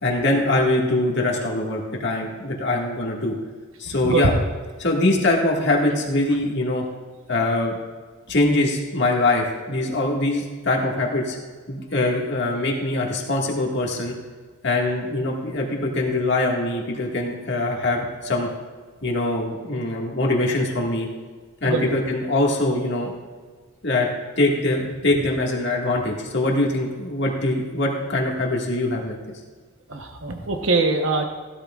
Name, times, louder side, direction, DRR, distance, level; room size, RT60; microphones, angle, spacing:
voice 1, 0.0-3.3 3.8-4.3 4.8-6.8 7.3-7.7 8.3-11.4 11.7-14.1 14.6-18.5 19.0-21.1 21.6-23.1 23.8-24.1 24.4-29.2, left 2 dB, 50° left, -1 dB, 1.8 m, -23 dB
voice 2, 29.9-31.2, right 3 dB, 65° right, 4 dB, 1.0 m, -22 dB
16.0 x 12.5 x 2.4 m, 1.5 s
head